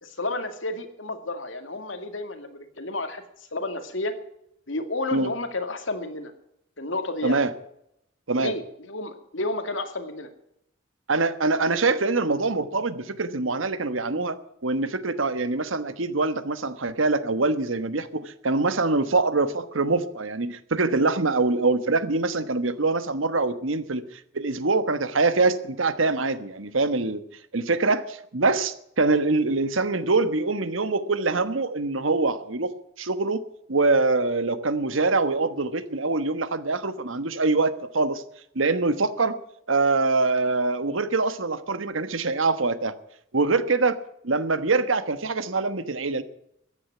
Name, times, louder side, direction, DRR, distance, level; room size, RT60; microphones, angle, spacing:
voice 1, 0.0-3.2 3.5-4.1 4.7-6.3 6.8-7.4 8.4-10.3 29.0-29.2, left 2 dB, 75° left, 7 dB, 2.4 m, -31 dB
voice 2, 11.1-14.4 14.6-27.2 27.5-32.7 33.0-38.2 38.5-39.4 39.7-42.9 43.3-44.0 44.2-46.2, right 3 dB, 90° right, 12 dB, 1.3 m, -24 dB
14.5 x 10.0 x 9.3 m, 0.78 s
head